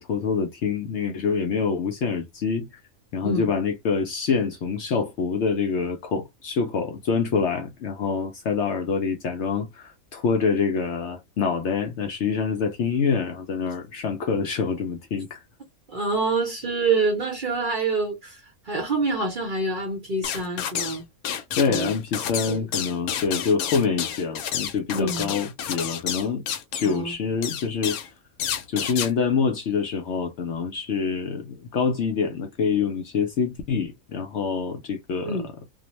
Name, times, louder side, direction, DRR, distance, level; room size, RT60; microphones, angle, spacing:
voice 1, 0.0-2.7 3.1-15.4 21.6-26.4 26.7-28.0 28.7-35.7, left 5 dB, 65° left, 0.7 m, -26 dB
voice 2, 15.9-21.1 21.7-21.9 22.5-22.6 24.9-25.3 26.8-27.1 35.2-35.5, right 3 dB, 45° right, 0.7 m, -26 dB
sound 1, 20.2-21.0 21.2-27.0 27.4-28.1 28.4-29.1, left 9 dB, 85° left, 1.1 m, -30 dB
2.5 x 2.0 x 2.8 m
omnidirectional pair, 1.5 m